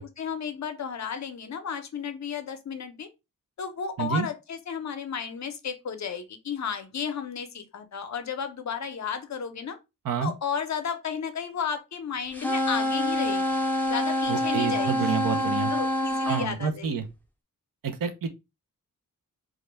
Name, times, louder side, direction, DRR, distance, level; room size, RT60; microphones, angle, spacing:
voice 1, 0.0-3.1 3.6-9.8 10.2-13.4 13.9-16.9, left 7 dB, 55° left, 0.5 m, -33 dB
sound 1, 12.3-16.5, left 1 dB, 5° left, 0.5 m, -26 dB
voice 2, 14.3-15.7 16.3-17.0 17.8-18.3, right 6 dB, 75° right, 0.6 m, -28 dB
2.4 x 2.1 x 3.1 m
wide cardioid pair, 85°, 34 cm